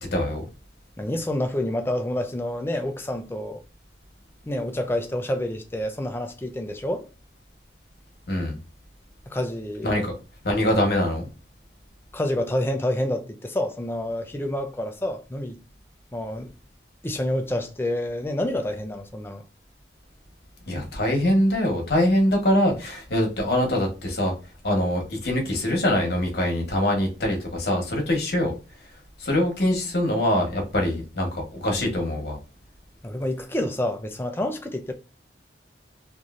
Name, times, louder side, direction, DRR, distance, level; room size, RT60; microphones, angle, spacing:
voice 1, 0.1-0.5 8.3-8.5 9.8-10.1 10.4-11.3 20.7-24.3 24.6-28.5 29.2-32.4, left 1 dB, 55° left, 1.0 m, -23 dB
voice 2, 1.0-3.6 4.5-7.1 9.3-10.0 12.1-15.6 16.1-16.5 17.0-19.4 33.0-34.9, left 1 dB, 10° left, 0.4 m, -28 dB
3.1 x 2.6 x 2.4 m
head